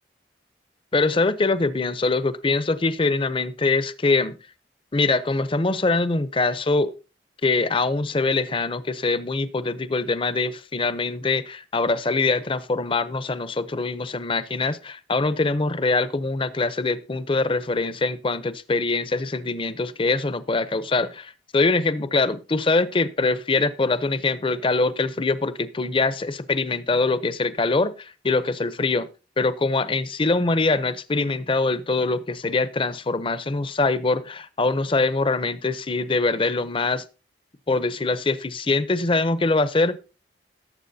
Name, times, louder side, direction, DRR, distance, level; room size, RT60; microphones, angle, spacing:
voice 1, 0.9-4.4 4.9-6.9 7.4-29.1 29.4-37.0 37.7-40.0, left 3 dB, 30° left, 15 dB, 0.6 m, -23 dB
18.0 x 7.4 x 2.7 m, 0.32 s
head